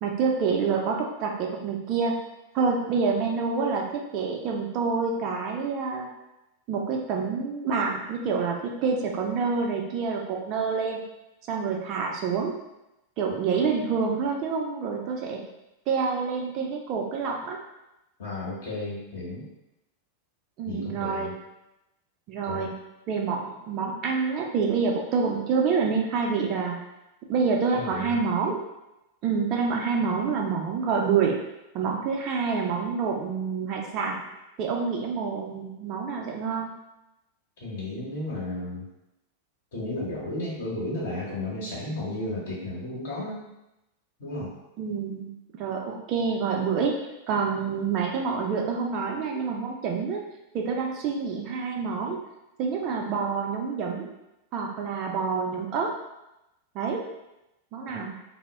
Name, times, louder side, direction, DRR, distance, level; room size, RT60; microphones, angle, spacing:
voice 1, 0.0-2.2 2.5-6.1 6.7-11.0 11.5-12.5 13.2-15.4 15.9-17.6 20.6-21.3 22.3-22.7 23.1-26.8 27.3-28.6 29.2-31.4 31.7-34.2 34.6-36.7 44.8-47.0 47.3-50.2 50.5-52.2 52.6-54.1 54.5-55.9 56.7-57.0 57.7-58.1, right 5 dB, 40° right, 0 dB, 0.4 m, -27 dB
voice 2, 18.2-19.4 20.6-21.3 22.4-22.7 27.7-28.2 37.6-38.9 39.7-43.4 44.2-44.5 57.8-58.0, left 2 dB, 55° left, -6 dB, 1.0 m, -33 dB
2.0 x 2.0 x 3.3 m, 0.93 s
figure-of-eight pair, 90°, 0 cm